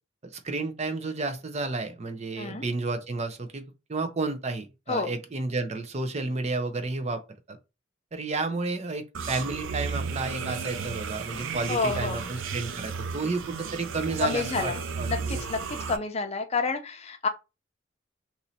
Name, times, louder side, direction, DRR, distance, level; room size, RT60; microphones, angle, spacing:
voice 1, 0.3-3.6 3.9-7.2 7.5-7.6 8.1-15.4, right 3 dB, 35° right, 0.6 m, -31 dB
sound 1, 9.1-16.0, right 5 dB, 90° right, 0.5 m, -34 dB
voice 2, 11.7-12.2 14.2-14.8 15.1-17.3, left 4 dB, 35° left, 0.6 m, -29 dB
3.0 x 2.7 x 4.0 m
head